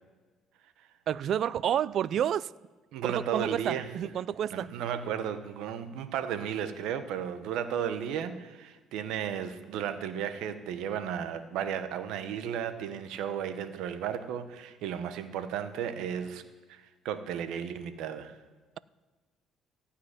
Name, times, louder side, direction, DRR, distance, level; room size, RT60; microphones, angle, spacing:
voice 1, 1.1-2.5 3.0-4.7, right 10 dB, 55° right, 0.3 m, -29 dB
voice 2, 2.9-3.9 4.5-16.4 16.7-18.3, right 8 dB, 80° right, 0.9 m, -34 dB
14.5 x 5.6 x 9.7 m
cardioid pair, 125°, 0 cm